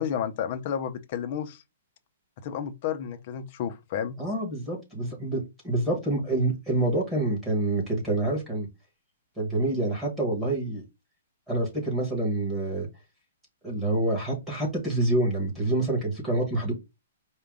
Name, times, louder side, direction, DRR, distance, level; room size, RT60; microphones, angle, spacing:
voice 1, 0.0-1.6 2.4-4.2, left 8 dB, 30° left, 0.5 m, -31 dB
voice 2, 4.2-8.7 9.4-10.8 11.5-12.9 13.6-16.7, right 2 dB, 5° right, 1.3 m, -27 dB
4.7 x 2.2 x 3.6 m
hypercardioid pair, 175°, 0 cm